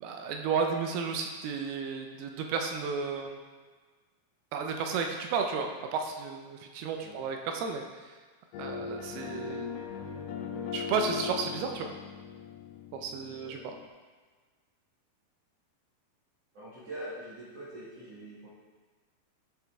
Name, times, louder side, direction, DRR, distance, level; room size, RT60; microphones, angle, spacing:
voice 1, 0.0-3.4 4.5-7.8 8.6-9.8 10.7-11.9 12.9-13.6, right 5 dB, 80° right, 3 dB, 2.5 m, -33 dB
sound 1, 8.5-13.9, left 7 dB, 90° left, 2.7 m, -39 dB
voice 2, 16.5-18.5, right 1 dB, 50° right, -10 dB, 2.4 m, -43 dB
11.0 x 5.4 x 3.5 m, 1.4 s
omnidirectional pair, 4.6 m